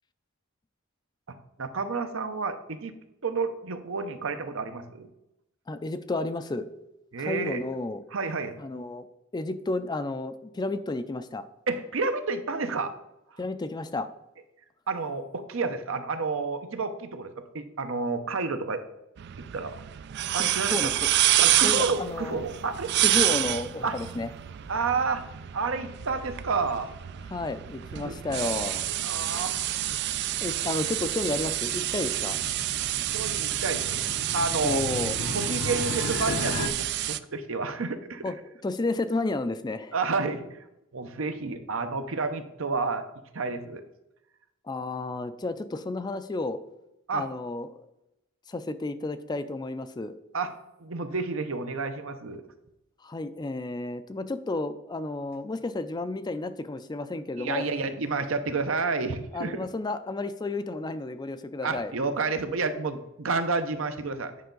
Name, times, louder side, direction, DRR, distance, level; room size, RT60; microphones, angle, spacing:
voice 1, 1.3-2.9 3.2-5.1 7.1-7.6 8.1-8.5 11.7-12.9 14.9-18.8 19.5-19.8 20.3-20.8 21.4-23.1 23.8-24.0 24.7-25.2 25.5-26.9 28.0-28.1 29.0-29.7 30.0-30.1 33.1-34.1 34.3-34.8 35.3-38.2 39.9-40.6 40.9-43.1 43.3-43.8 47.1-47.3 50.3-50.5 50.8-52.5 57.4-59.6 61.6-64.3, right 4 dB, 70° right, 9 dB, 0.7 m, -30 dB
voice 2, 5.7-6.7 7.2-8.0 8.6-9.1 9.3-11.4 13.4-14.1 20.4-21.1 21.6-22.5 23.0-24.3 27.3-28.9 30.4-32.4 34.6-35.2 38.2-38.4 38.6-40.0 44.6-46.6 47.1-47.9 48.5-50.2 53.0-57.7 59.3-61.9, left 2 dB, 20° left, 11 dB, 0.4 m, -32 dB
sound 1, 19.2-37.2, right 13 dB, 55° right, 0.3 m, -28 dB
sound 2, 20.9-36.7, left 3 dB, 70° left, 0.8 m, -40 dB
9.3 x 5.5 x 3.8 m, 0.89 s
head